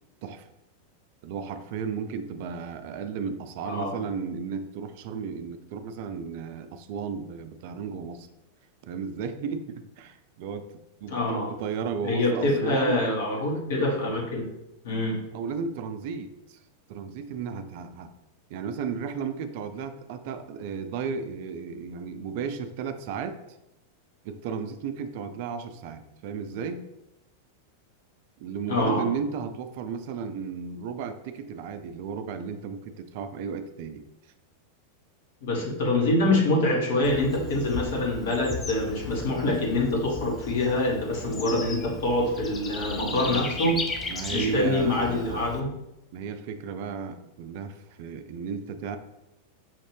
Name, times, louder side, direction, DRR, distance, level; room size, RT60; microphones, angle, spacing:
voice 1, 1.2-8.3 8.8-10.7 11.0-13.0 15.3-16.6 16.9-18.1 18.5-23.4 24.2-26.8 28.4-34.0 43.0-43.6 44.1-45.4 46.1-49.0, right 6 dB, 50° right, 9 dB, 0.3 m, -34 dB
voice 2, 3.6-4.0 11.1-11.5 12.0-14.4 14.8-15.2 28.7-29.1 35.4-43.8 44.3-45.7, left 2 dB, 55° left, -1 dB, 1.2 m, -25 dB
Bird / Insect, 37.0-45.6, left 3 dB, 20° left, 0.5 m, -36 dB
5.6 x 2.5 x 3.3 m, 0.91 s
figure-of-eight pair, 90°, 0 cm